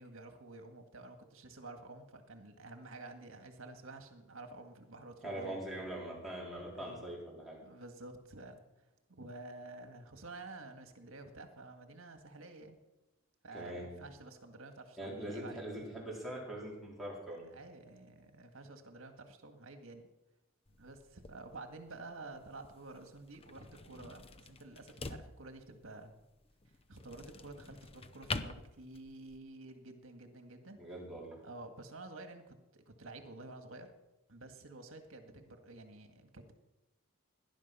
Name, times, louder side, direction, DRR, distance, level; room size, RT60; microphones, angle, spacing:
voice 1, 0.0-5.8 6.7-7.0 7.6-8.6 9.1-12.8 13.4-15.6 17.5-20.1 20.8-26.1 26.9-30.8 31.4-33.9 34.3-36.5, right 2 dB, 65° right, 6 dB, 1.8 m, -50 dB
voice 2, 5.2-7.6 13.5-13.9 15.0-17.4 30.8-31.4, right 1 dB, ahead, -5 dB, 4.3 m, -42 dB
sound 1, 20.7-29.4, left 3 dB, 25° left, 0.6 m, -47 dB
18.0 x 11.0 x 5.6 m, 0.99 s
head